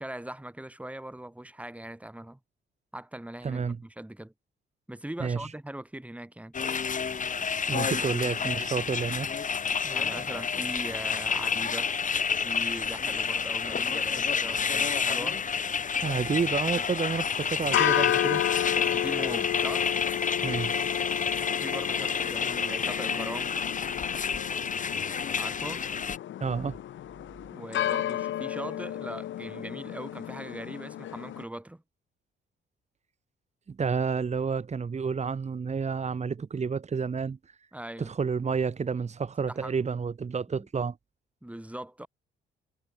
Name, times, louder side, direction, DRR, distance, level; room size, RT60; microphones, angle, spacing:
voice 1, 0.0-2.4 2.9-4.3 4.9-6.5 7.9-8.0 9.8-11.9 12.4-15.4 16.0-16.2 16.8-16.9 18.7-19.9 21.5-23.6 25.4-25.8 27.5-31.8 37.7-38.1 39.5-39.8 40.6-40.7 41.4-42.1, right 1 dB, 5° right, 3.6 m, -40 dB
voice 2, 3.4-3.8 5.2-5.5 7.7-9.3 16.0-18.4 20.4-20.7 26.4-26.8 33.7-37.4 38.0-41.0, right 5 dB, 35° right, 2.0 m, -30 dB
sound 1, 6.5-26.2, left 6 dB, 40° left, 2.5 m, -29 dB
sound 2, 17.6-31.4, left 12 dB, 70° left, 1.8 m, -32 dB
cardioid pair, 90°, 20 cm